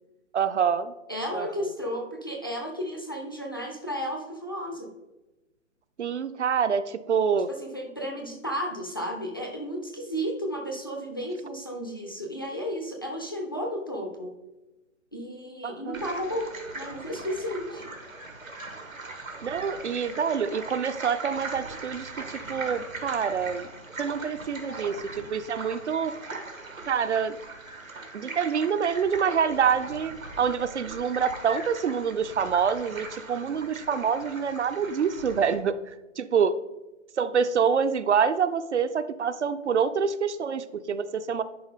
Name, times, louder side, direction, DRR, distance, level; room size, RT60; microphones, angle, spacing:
voice 1, 0.3-0.9 1.3-1.5 6.0-7.5 15.6-16.0 19.4-23.7 24.0-26.1 26.9-27.4 28.1-35.8 36.2-36.5 37.2-41.4, right 6 dB, 60° right, 12 dB, 0.6 m, -26 dB
voice 2, 1.1-4.9 7.5-14.4 15.1-17.9, equal, 20° left, 1 dB, 0.4 m, -33 dB
sound 1, 15.9-35.5, right 3 dB, 90° right, 1.6 m, -40 dB
10.5 x 4.3 x 3.6 m, 1.0 s
figure-of-eight pair, 135°, 39 cm